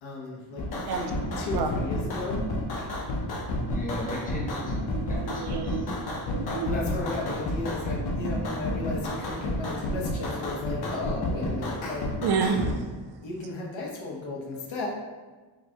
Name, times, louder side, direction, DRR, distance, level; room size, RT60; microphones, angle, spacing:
voice 1, 0.0-0.6 0.9-2.4 2.7-2.9 6.6-12.1 13.2-14.9, left 2 dB, 85° left, -2 dB, 1.0 m, -35 dB
sound 1, 0.6-12.8, left 1 dB, 55° left, 0.7 m, -31 dB
voice 2, 3.5-4.6 5.1-5.2 5.5-5.6 6.3-7.1, left 1 dB, 20° left, -1 dB, 0.6 m, -36 dB
voice 3, 4.9-6.7 12.2-12.9, right 6 dB, 60° right, 5 dB, 0.5 m, -30 dB
4.8 x 2.2 x 2.8 m, 1.3 s
wide cardioid pair, 115°, 45 cm